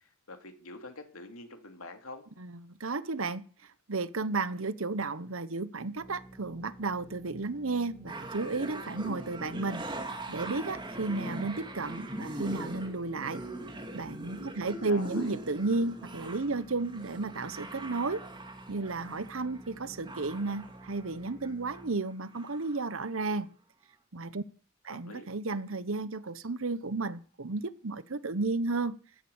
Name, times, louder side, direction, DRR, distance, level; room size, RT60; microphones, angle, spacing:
voice 1, 0.0-2.2 14.8-15.3 24.9-25.3, left 2 dB, 80° left, 2.9 m, -46 dB
voice 2, 2.4-3.4 3.9-9.8 10.3-13.4 13.9-18.2 18.7-23.5 24.1-24.4 24.8-29.0, right 3 dB, 70° right, 1.0 m, -33 dB
sound 1, 6.0-21.9, right 1 dB, ahead, 3.1 m, -51 dB
sound 2, 8.1-21.8 22.1-22.9 23.4-23.5, right 1 dB, 20° right, 2.4 m, -42 dB
15.5 x 11.5 x 7.2 m
head